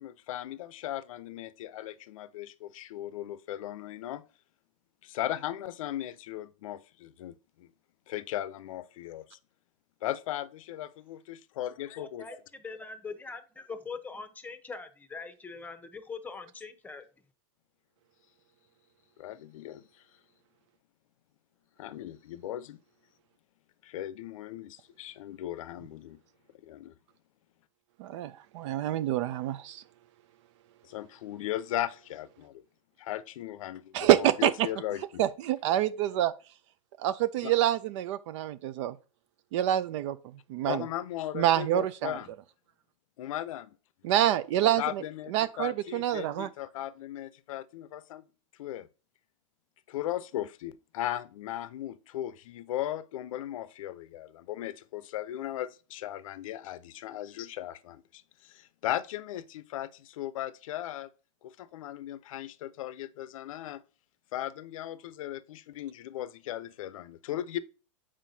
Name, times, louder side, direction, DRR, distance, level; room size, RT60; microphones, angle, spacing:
voice 1, 0.0-4.2 5.0-7.7 8.1-9.4 10.0-12.3 19.2-19.8 21.8-22.8 23.8-26.2 26.6-26.9 30.8-32.6 33.0-35.2 37.4-37.5 40.6-42.3 43.2-43.8 44.6-48.2 48.6-48.9 49.9-61.1 61.4-63.8 64.3-67.6, left 13 dB, 80° left, 0.5 m, -37 dB
voice 2, 12.0-17.0, left 4 dB, 10° left, 0.8 m, -42 dB
voice 3, 28.0-29.8 33.9-34.7 35.2-36.3 37.0-39.0 39.5-40.2 40.5-40.8 41.3-42.1 44.0-45.0 45.3-46.5, right 12 dB, 65° right, 0.4 m, -27 dB
7.4 x 4.9 x 2.7 m
supercardioid pair, 125°, 17 cm